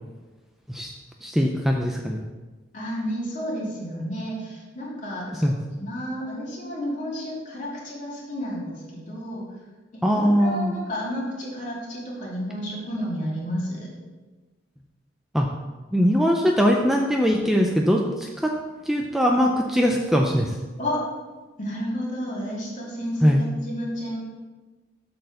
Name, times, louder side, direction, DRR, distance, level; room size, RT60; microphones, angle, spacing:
voice 1, 1.2-2.2 5.4-5.5 10.0-10.7 15.3-15.5 15.9-18.5 18.9-20.5 23.2-23.4, equal, ahead, 1 dB, 0.4 m, -21 dB
voice 2, 2.7-5.4 5.8-9.5 9.9-13.9 20.8-21.0 21.6-24.2, equal, 40° left, -6 dB, 2.9 m, -31 dB
7.7 x 4.5 x 6.6 m, 1.3 s
head